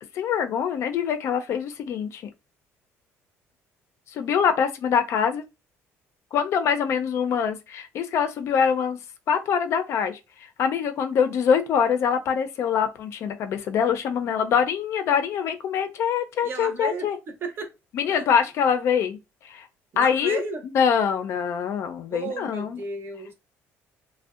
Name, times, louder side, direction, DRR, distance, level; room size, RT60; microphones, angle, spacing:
voice 1, 0.1-2.2 4.1-5.4 6.3-9.0 9.3-10.2 10.6-17.2 17.9-19.2 19.4-19.7 20.0-22.8, left 7 dB, 55° left, 0.4 m, -24 dB
voice 2, 16.4-17.7 18.1-18.2 19.9-20.6 22.1-23.3, right 4 dB, 45° right, 0.6 m, -34 dB
2.5 x 2.0 x 2.3 m
cardioid pair, 125°, 6 cm